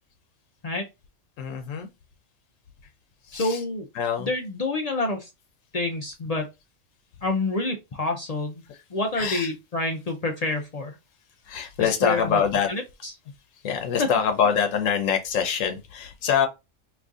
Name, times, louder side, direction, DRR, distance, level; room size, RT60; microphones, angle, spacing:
voice 1, 1.4-1.9 3.3-3.6 3.9-4.3 8.7-8.8 9.2-9.5 11.5-12.7 13.6-16.5, left 7 dB, 85° left, 1.0 m, -24 dB
voice 2, 3.3-3.8 4.2-5.3 5.7-6.5 7.2-8.6 8.9-10.9 11.8-12.4 12.7-13.1, left 2 dB, 60° left, 0.4 m, -28 dB
3.0 x 2.5 x 3.5 m
omnidirectional pair, 1.3 m